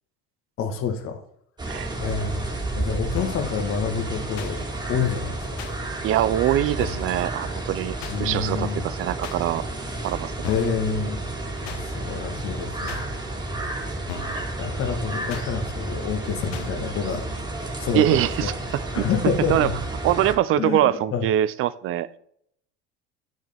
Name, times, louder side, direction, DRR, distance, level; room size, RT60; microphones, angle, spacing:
voice 1, 0.6-1.2 2.0-5.4 8.1-8.8 10.5-11.2 11.6-13.0 14.6-17.3 17.8-18.5 18.9-19.8 20.5-21.2, left 6 dB, 45° left, 1.5 m, -28 dB
sound 1, 1.6-20.3, right 2 dB, 15° right, 2.1 m, -31 dB
sound 2, 3.2-3.5 4.4-4.5 5.6-5.7 6.8-7.1 8.0-8.2 9.2-9.4 10.4-10.8 11.6-11.8 12.9-13.0 14.1-14.4 15.3-15.5 16.5-16.7, left 7 dB, 75° left, 1.2 m, -36 dB
voice 2, 6.0-7.9 8.2-9.6 10.0-10.5 14.3-14.5 17.9-19.0 19.5-19.7 20.0-22.2, right 12 dB, 45° right, 0.5 m, -23 dB
9.0 x 6.4 x 3.4 m
cardioid pair, 140°, 29 cm